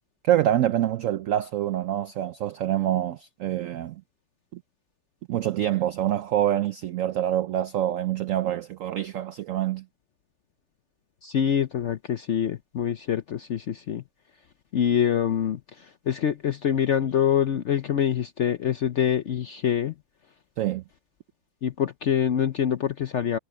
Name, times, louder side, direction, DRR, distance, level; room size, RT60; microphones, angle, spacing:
voice 1, 0.2-4.0 4.5-4.6 5.3-9.8 20.6-20.8, right 12 dB, 90° right, 0.7 m, -26 dB
voice 2, 11.2-14.0 14.7-19.9 21.6-23.4, left 9 dB, 65° left, 0.7 m, -25 dB
omnidirectional pair, 1.9 m